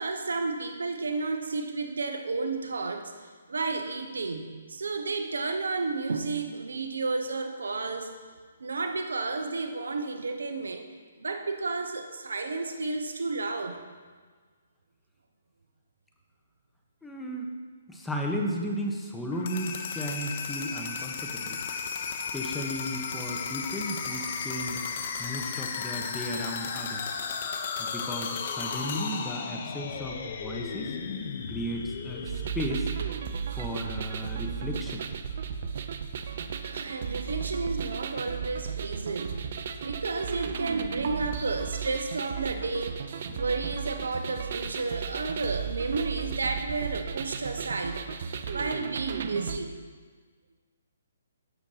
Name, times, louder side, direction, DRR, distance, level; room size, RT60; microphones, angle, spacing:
voice 1, 0.0-8.1 8.6-10.9 11.2-13.8 36.3-39.5 39.8-48.0 48.5-49.8, right 3 dB, 80° right, 6 dB, 0.9 m, -32 dB
voice 2, 17.0-17.5 17.9-21.6 22.3-24.8 25.2-27.1 27.8-31.0 31.5-32.9 33.5-35.0 43.3-43.4, equal, 5° left, 0 dB, 1.2 m, -34 dB
sound 1, 19.3-33.2, left 6 dB, 50° left, 0.9 m, -35 dB
sound 2, 32.3-49.6, right 7 dB, 55° right, 0.6 m, -35 dB
16.0 x 6.9 x 2.9 m, 1.5 s
hypercardioid pair, 140°, 0 cm